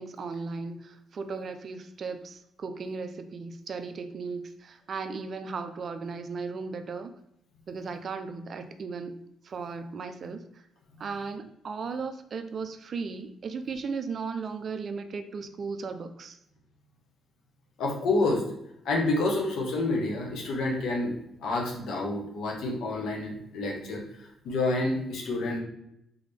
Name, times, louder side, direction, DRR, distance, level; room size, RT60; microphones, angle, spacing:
voice 1, 0.0-7.1 7.7-9.2 9.4-10.4 11.0-16.4, right 4 dB, 50° right, 8 dB, 0.5 m, -36 dB
voice 2, 17.8-18.4 18.8-21.1 21.4-25.6, left 2 dB, 75° left, 0 dB, 1.2 m, -28 dB
3.7 x 3.5 x 3.5 m, 0.77 s
cardioid pair, 90°, 0 cm